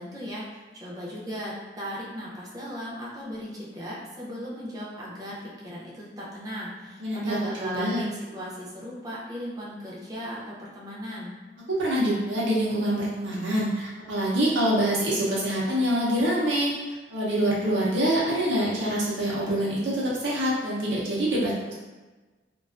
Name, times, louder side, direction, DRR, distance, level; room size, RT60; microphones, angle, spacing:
voice 1, 0.0-11.3, equal, 20° right, -7 dB, 0.5 m, -37 dB
voice 2, 7.0-8.0 11.7-16.7 17.1-21.7, right 1 dB, 85° right, -6 dB, 0.7 m, -25 dB
2.4 x 2.2 x 2.4 m, 1.3 s
head